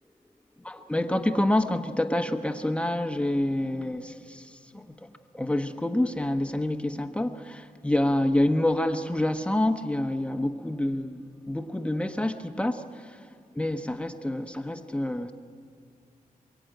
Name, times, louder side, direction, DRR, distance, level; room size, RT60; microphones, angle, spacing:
voice 1, 0.6-13.2 13.6-15.3, left 1 dB, 10° left, 7 dB, 1.0 m, -27 dB
23.5 x 23.5 x 9.1 m, 2.3 s
wide cardioid pair, 160°, 15 cm